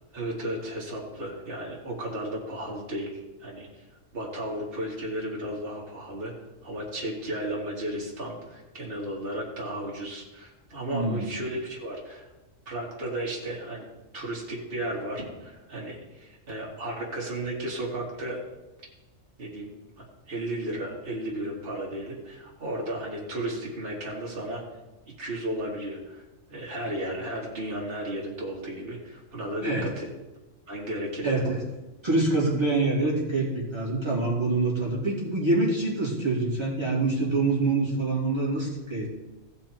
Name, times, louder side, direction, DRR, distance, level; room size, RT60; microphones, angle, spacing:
voice 1, 0.1-3.9 4.1-6.3 6.6-12.3 12.7-13.9 14.1-18.4 19.4-19.7 20.0-24.6 25.2-30.1 30.7-31.4, right 1 dB, 45° right, -4 dB, 2.1 m, -34 dB
voice 2, 10.9-11.3 29.6-29.9 31.2-31.6 32.0-39.1, right 2 dB, 20° right, -6 dB, 2.9 m, -25 dB
15.5 x 5.5 x 4.4 m, 1.1 s
omnidirectional pair, 1.4 m